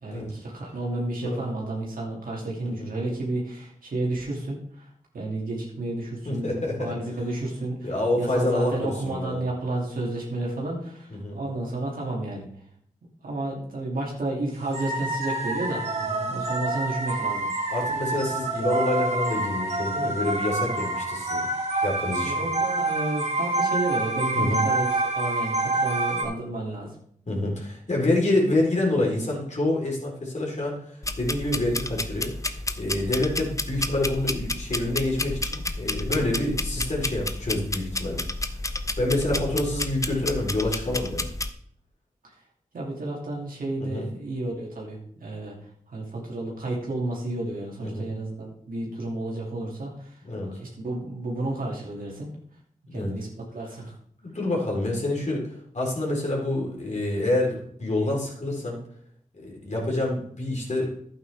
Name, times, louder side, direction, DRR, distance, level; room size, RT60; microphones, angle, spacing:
voice 1, 0.0-4.9 5.1-12.5 13.2-15.8 16.3-17.5 22.2-24.9 25.2-26.9 42.7-45.5 45.9-50.2 50.5-52.3 52.9-53.3 53.5-53.9, right 2 dB, 85° right, -3 dB, 2.6 m, -31 dB
voice 2, 2.6-2.9 6.3-6.9 7.8-9.4 11.1-11.4 16.1-16.3 17.7-21.5 21.8-22.4 24.3-24.6 27.3-32.3 32.8-38.2 39.0-41.3 43.8-44.1 47.8-48.1 50.2-50.5 52.9-53.1 54.2-58.8 59.3-60.9, left 1 dB, 55° left, -2 dB, 4.0 m, -27 dB
sound 1, 14.7-26.2, right 2 dB, 50° right, 2.2 m, -27 dB
sound 2, 31.0-41.5, left 2 dB, 20° left, 0.7 m, -31 dB
11.0 x 8.7 x 3.5 m, 0.64 s
cardioid pair, 45°, 14 cm